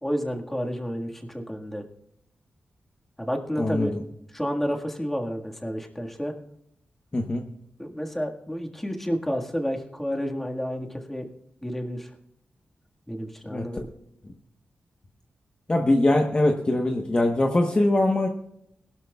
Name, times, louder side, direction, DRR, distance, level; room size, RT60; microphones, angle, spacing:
voice 1, 0.0-1.8 3.2-3.9 4.3-6.3 7.8-11.3 11.6-12.1 13.1-13.9, equal, 5° left, 1 dB, 1.7 m, -30 dB
voice 2, 3.6-3.9 7.1-7.5 13.5-13.7 15.7-18.3, left 1 dB, 30° left, 3 dB, 1.1 m, -22 dB
21.0 x 12.0 x 2.4 m, 0.75 s
cardioid pair, 85°, 4 cm